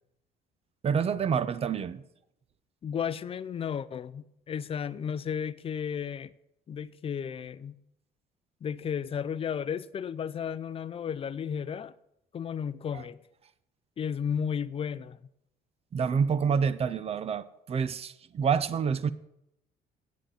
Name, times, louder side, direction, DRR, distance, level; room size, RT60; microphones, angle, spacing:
voice 1, 0.8-2.0 12.9-13.0 15.9-19.1, right 6 dB, 35° right, 0.6 m, -28 dB
voice 2, 2.8-6.3 6.7-7.8 8.6-11.9 12.3-13.2 14.0-15.2, left 7 dB, 35° left, 0.5 m, -33 dB
8.4 x 7.8 x 7.5 m
cardioid pair, 110°, 17 cm